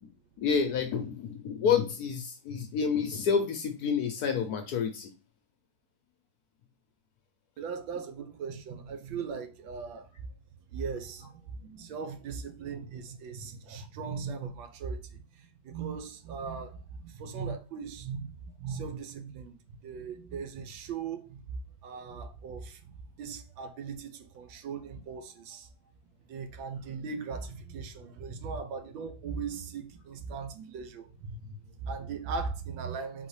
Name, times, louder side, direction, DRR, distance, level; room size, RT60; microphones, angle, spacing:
voice 1, 0.4-5.1, left 6 dB, 65° left, 1.0 m, -29 dB
voice 2, 7.6-10.1 10.7-25.7 26.3-33.3, right 5 dB, 85° right, 1.5 m, -39 dB
3.9 x 3.9 x 3.1 m
omnidirectional pair, 2.1 m